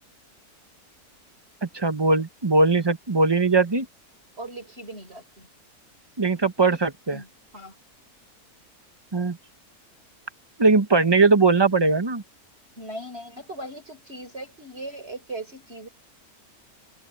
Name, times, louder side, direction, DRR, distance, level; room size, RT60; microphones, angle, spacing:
voice 1, 1.6-3.9 6.2-7.2 9.1-9.4 10.6-12.2, right 3 dB, 20° right, 0.9 m, -20 dB
voice 2, 4.4-5.5 6.6-6.8 7.1-7.8 12.8-15.9, right 1 dB, 40° right, 5.1 m, -39 dB
omnidirectional pair, 1.6 m